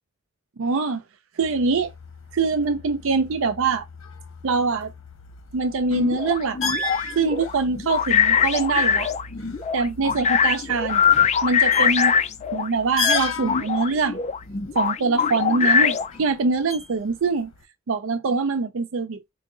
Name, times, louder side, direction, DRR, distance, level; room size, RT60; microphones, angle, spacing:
voice 1, 0.6-1.0 1.4-1.9 2.3-3.9 4.4-4.9 5.5-6.6 7.2-9.1 9.7-11.0 11.4-12.1 12.5-14.2 14.8-17.5 17.9-19.2, right 4 dB, 70° right, 0.5 m, -23 dB
sound 1, 1.4-17.6, left 4 dB, 70° left, 1.0 m, -35 dB
sound 2, 5.9-12.7 13.0-16.2, left 7 dB, 35° left, 0.4 m, -22 dB
4.7 x 2.5 x 2.5 m
head